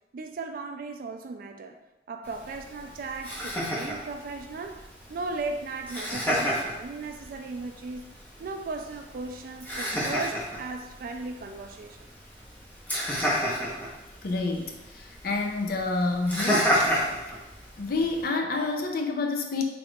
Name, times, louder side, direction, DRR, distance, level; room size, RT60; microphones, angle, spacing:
voice 1, 0.1-1.8 2.1-8.1 8.4-12.1, right 3 dB, 50° right, 6 dB, 0.3 m, -37 dB
Laughter, 2.2-18.2, equal, 10° left, 0.7 m, -32 dB
voice 2, 14.2-17.1 17.8-19.6, left 3 dB, 55° left, 3 dB, 0.4 m, -29 dB
3.7 x 2.3 x 3.6 m, 0.99 s
head